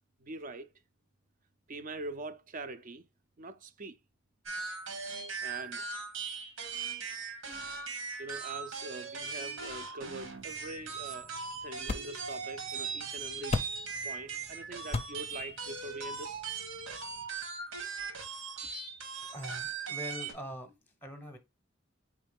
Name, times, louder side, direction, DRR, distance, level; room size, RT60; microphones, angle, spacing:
voice 1, 0.2-0.7 1.7-3.0 3.4-4.0 5.4-5.8 8.2-11.3 11.6-13.6 14.0-16.4, right 2 dB, 45° right, 0.5 m, -43 dB
sound 1, 4.5-20.3, right 5 dB, 80° right, 1.5 m, -39 dB
sound 2, 10.2-17.3, left 3 dB, 30° left, 0.5 m, -41 dB
voice 2, 19.3-21.4, equal, 10° left, 0.8 m, -43 dB
4.7 x 3.2 x 3.4 m
head